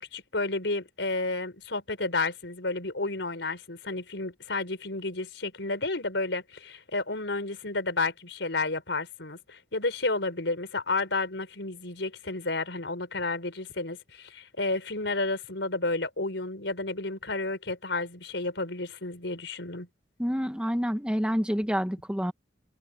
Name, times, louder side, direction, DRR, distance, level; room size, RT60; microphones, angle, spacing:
voice 1, 0.0-19.9, left 3 dB, 90° left, 4.7 m, -31 dB
voice 2, 20.2-22.3, equal, 5° right, 1.8 m, -28 dB
head